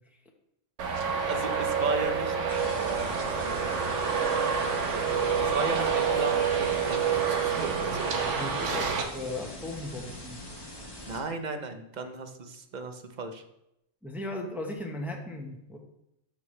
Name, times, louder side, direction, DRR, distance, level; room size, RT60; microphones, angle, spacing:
Traffic noise roadway noise, 0.8-9.0, right 6 dB, 75° right, 1.3 m, -28 dB
voice 1, 1.3-2.3 5.4-8.3 11.1-13.4, right 3 dB, 40° right, 7 dB, 0.8 m, -35 dB
sound 1, 2.5-11.2, left 1 dB, 20° left, 1.3 m, -43 dB
voice 2, 8.3-10.4 14.0-15.8, left 2 dB, ahead, 1 dB, 0.9 m, -37 dB
12.5 x 5.6 x 3.2 m, 0.82 s
omnidirectional pair, 1.3 m